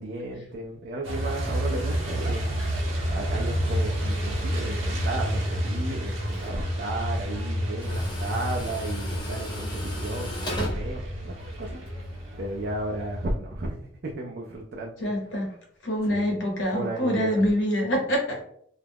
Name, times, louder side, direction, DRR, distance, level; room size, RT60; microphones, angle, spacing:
voice 1, 0.0-2.4 2.8-11.8 12.4-13.8 14.0-15.1 16.1-16.3 16.7-17.3, right 1 dB, 50° right, 0 dB, 0.3 m, -34 dB
Truck, 1.0-13.3, equal, 90° right, 0.6 m, -30 dB
Tools, 5.6-11.9, equal, 20° left, 0.6 m, -37 dB
voice 2, 15.0-15.5 15.8-18.4, equal, 70° left, -1 dB, 0.9 m, -25 dB
2.3 x 2.0 x 3.3 m, 0.65 s
head